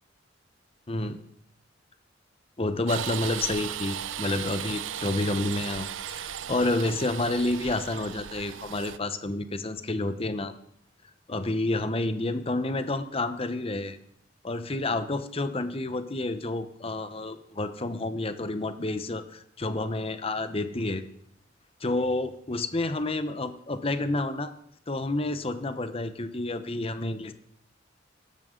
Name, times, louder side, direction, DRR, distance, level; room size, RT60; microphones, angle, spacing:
voice 1, 0.9-1.2 2.6-10.5 11.3-14.0 14.4-21.0 21.8-24.5 24.9-27.3, left 2 dB, 30° left, 11 dB, 0.9 m, -29 dB
sound 1, 2.9-9.0, right 10 dB, 75° right, 0.6 m, -36 dB
16.0 x 13.0 x 3.8 m, 0.74 s
head